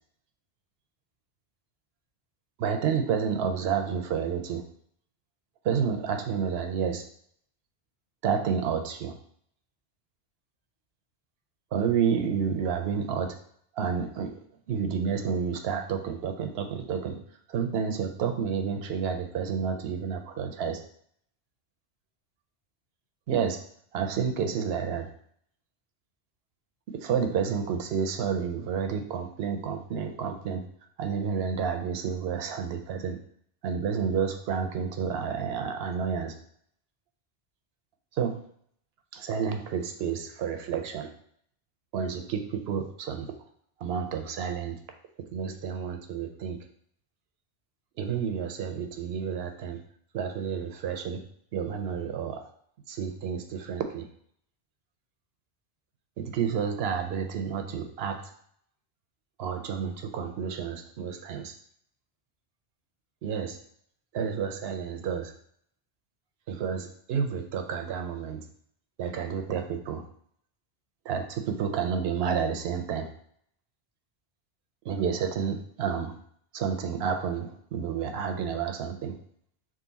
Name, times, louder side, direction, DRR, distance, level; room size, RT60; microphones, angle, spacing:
voice 1, 2.6-4.6 5.6-7.0 8.2-9.2 11.7-13.3 13.8-14.3 14.7-17.2 17.5-20.8 23.3-23.6 23.9-25.1 26.9-30.6 31.0-33.2 33.6-36.3 38.1-38.4 39.1-41.1 41.9-43.3 43.8-44.8 45.3-46.6 48.0-49.8 50.1-51.2 51.5-52.4 52.9-54.1 56.2-58.2 59.4-61.5 63.2-63.6 64.1-65.3 66.5-68.4 69.0-70.0 71.1-73.1 74.8-76.1 76.5-79.2, right 7 dB, 80° right, 6 dB, 0.8 m, -30 dB
3.7 x 2.6 x 4.0 m, 0.64 s
omnidirectional pair, 1.1 m